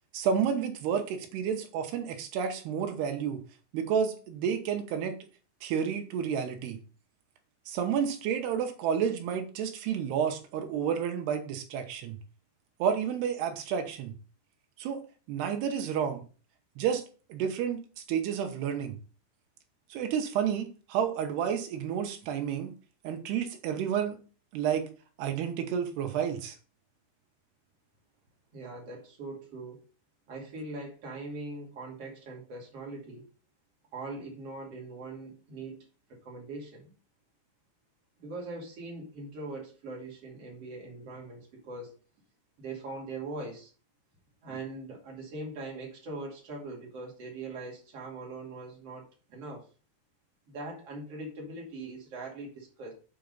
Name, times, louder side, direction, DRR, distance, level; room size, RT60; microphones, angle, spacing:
voice 1, 0.1-3.4 3.7-5.2 5.6-6.8 7.7-12.2 12.8-14.1 14.8-15.0 15.3-16.2 16.8-17.0 17.3-17.8 18.1-19.0 19.9-22.7 23.0-24.2 24.5-24.9 25.2-26.6, right 8 dB, 70° right, 5 dB, 2.9 m, -30 dB
voice 2, 28.5-29.8 30.3-33.3 33.9-36.9 38.2-42.0 42.6-43.7 44.4-49.6 50.5-52.9, right 2 dB, 40° right, -1 dB, 2.9 m, -41 dB
8.1 x 4.6 x 5.3 m, 0.37 s
omnidirectional pair, 5.3 m